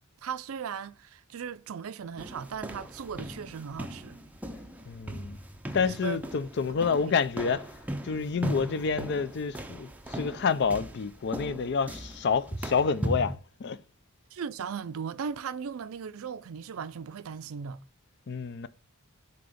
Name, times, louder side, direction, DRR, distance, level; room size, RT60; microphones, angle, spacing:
voice 1, 0.2-4.2 5.9-6.2 6.7-7.1 14.3-17.8, right 6 dB, 75° right, 0.4 m, -37 dB
sound 1, 2.2-13.4, equal, 5° right, 0.5 m, -38 dB
voice 2, 4.9-5.4 5.7-7.7 8.0-13.8 18.3-18.7, left 5 dB, 55° left, 0.4 m, -28 dB
7.6 x 2.9 x 5.0 m
head